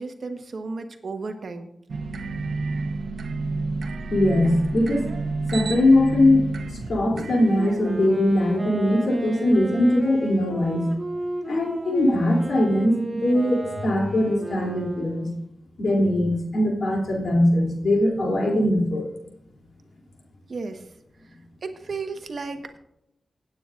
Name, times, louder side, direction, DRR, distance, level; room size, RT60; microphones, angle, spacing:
voice 1, 0.0-1.7 20.5-20.8 21.6-22.8, right 4 dB, 65° right, 6 dB, 1.3 m, -33 dB
sound 1, 1.9-8.5, right 3 dB, 85° right, 1.1 m, -30 dB
voice 2, 4.1-5.1 5.5-10.9 11.5-15.3 15.8-19.1, left 1 dB, 80° left, 0 dB, 3.1 m, -21 dB
Wind instrument woodwind instrument, 7.5-15.4, right 2 dB, 30° right, 2.1 m, -34 dB
18.0 x 8.9 x 2.6 m, 0.78 s
cardioid pair, 65°, 0 cm